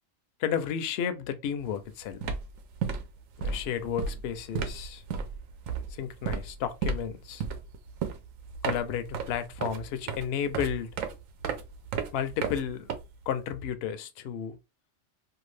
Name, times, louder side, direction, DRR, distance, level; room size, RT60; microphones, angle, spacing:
voice 1, 0.4-2.2 3.4-5.0 5.9-7.4 8.6-10.9 12.1-12.9 13.3-14.6, left 8 dB, 65° left, 0.7 m, -32 dB
sound 1, 1.6-1.8 2.1-13.5, right 5 dB, 80° right, 1.0 m, -34 dB
2.7 x 2.3 x 3.1 m
omnidirectional pair, 1.4 m